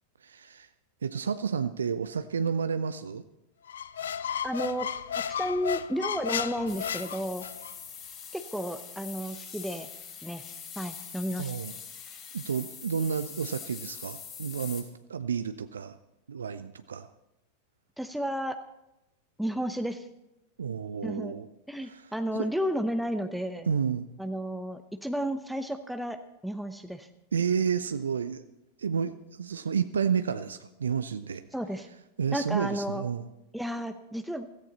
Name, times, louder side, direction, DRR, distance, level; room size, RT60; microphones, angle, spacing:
voice 1, 0.2-0.7 1.0-3.2 11.4-11.7 12.3-16.0 16.3-17.1 20.6-21.5 21.8-22.5 23.7-24.1 27.3-28.4 28.8-31.4 32.2-33.3, right 6 dB, 70° right, 11 dB, 0.5 m, -31 dB
Squeak, 3.7-7.7, left 8 dB, 65° left, 0.5 m, -33 dB
voice 2, 4.4-4.9 5.3-7.5 8.3-9.9 10.2-10.4 10.8-11.5 18.0-18.6 19.4-20.1 21.0-21.4 21.7-23.7 24.2-27.1 31.5-31.9 32.3-33.1 33.5-34.5, equal, ahead, 7 dB, 0.8 m, -32 dB
sound 1, 6.7-14.8, left 7 dB, 30° left, 3.6 m, -43 dB
16.0 x 14.5 x 4.2 m, 0.90 s
figure-of-eight pair, 90°, 0 cm